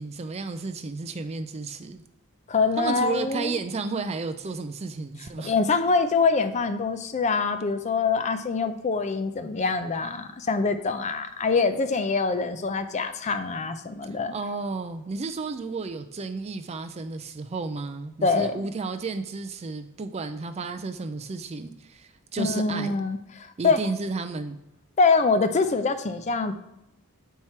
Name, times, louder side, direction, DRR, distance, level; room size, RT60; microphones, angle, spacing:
voice 1, 0.0-2.0 2.8-5.6 14.3-23.0 23.6-24.6, right 4 dB, 30° right, 8 dB, 0.4 m, -32 dB
voice 2, 2.5-3.5 5.4-14.3 18.2-18.5 22.4-23.8 25.0-26.5, left 4 dB, 30° left, 9 dB, 0.4 m, -24 dB
7.3 x 4.6 x 4.3 m, 0.86 s
head